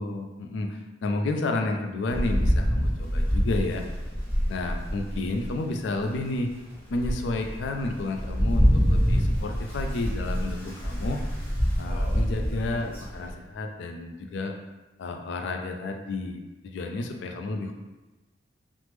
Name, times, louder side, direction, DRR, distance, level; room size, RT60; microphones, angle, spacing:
voice 1, 0.0-3.8 4.5-6.5 6.9-11.2 11.8-14.5 15.0-17.7, left 2 dB, 70° left, 4 dB, 0.3 m, -31 dB
Rain, 2.1-5.6 6.1-6.2 6.7-13.3, equal, 10° left, 0.6 m, -26 dB
3.3 x 2.0 x 3.0 m, 1.1 s
head